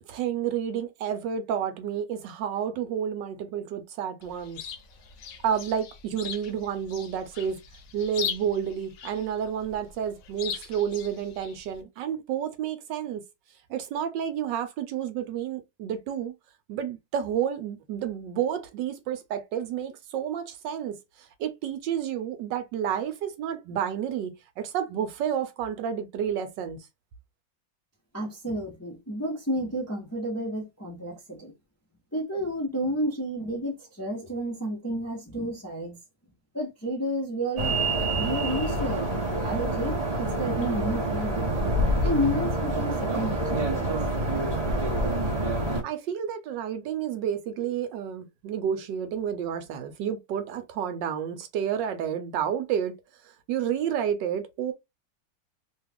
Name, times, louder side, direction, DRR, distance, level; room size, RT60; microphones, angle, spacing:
voice 1, 0.1-4.6 5.4-7.6 7.9-13.2 13.7-16.3 16.7-26.8 45.8-52.9 53.2-54.7, right 8 dB, 80° right, 1.3 m, -30 dB
Chirp tweet, 4.2-11.8, left 7 dB, 65° left, 0.8 m, -40 dB
voice 2, 28.1-31.5 32.1-36.0 36.5-41.5 42.0-44.0, equal, 15° left, 0.5 m, -31 dB
sound 1, 37.6-45.8, right 1 dB, 30° right, 0.7 m, -27 dB
3.2 x 2.3 x 3.4 m
omnidirectional pair, 2.0 m